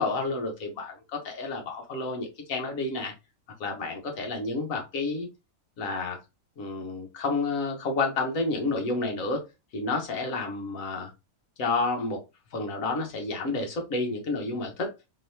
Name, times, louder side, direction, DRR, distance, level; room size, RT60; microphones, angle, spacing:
voice 1, 0.0-3.1 3.6-5.3 5.8-6.2 6.6-9.4 9.7-11.1 11.6-12.2 12.5-14.9, left 3 dB, 70° left, 3 dB, 1.4 m, -30 dB
3.9 x 3.0 x 2.6 m, 0.25 s
omnidirectional pair, 1.5 m